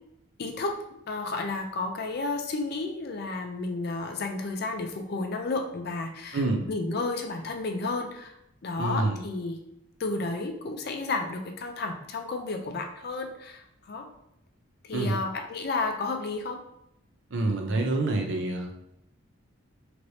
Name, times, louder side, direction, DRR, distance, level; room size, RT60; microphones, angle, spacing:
voice 1, 0.4-0.7 1.1-8.3 8.6-9.6 10.0-14.1 14.8-16.6, left 3 dB, 50° left, 4 dB, 0.4 m, -32 dB
voice 2, 6.3-6.6 8.8-9.2 14.9-15.1 17.3-18.7, right 2 dB, 60° right, 3 dB, 0.5 m, -27 dB
3.1 x 3.0 x 2.7 m, 0.79 s
head